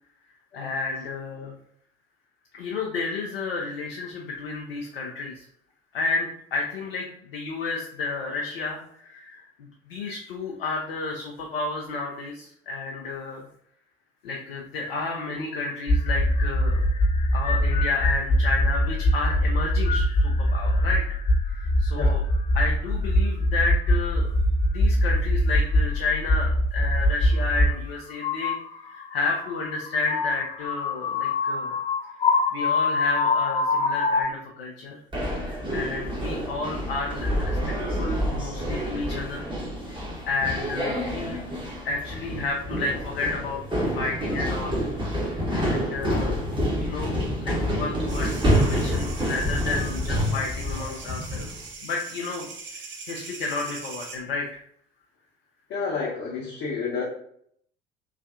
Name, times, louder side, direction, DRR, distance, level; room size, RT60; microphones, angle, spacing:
voice 1, 0.5-1.5 2.5-5.4 5.9-13.5 14.2-16.8 17.3-21.0 21.5-22.2 22.5-24.3 24.7-31.7 32.2-35.0 35.4-37.6 37.9-39.4 40.3-41.4 41.8-43.6 43.9-44.8 45.5-46.4 46.7-52.4 52.7-54.5, left 3 dB, 70° left, -1 dB, 0.5 m, -31 dB
sound 1, 15.9-27.7 28.2-34.2, left 1 dB, 20° left, 0.3 m, -23 dB
sound 2, 35.1-51.6, equal, 15° right, 1.1 m, -28 dB
sound 3, 48.1-54.2, right 4 dB, 40° right, 0.7 m, -41 dB
voice 2, 55.7-57.0, left 5 dB, 45° left, -5 dB, 0.8 m, -30 dB
3.1 x 2.4 x 2.5 m, 0.67 s
figure-of-eight pair, 55°, 29 cm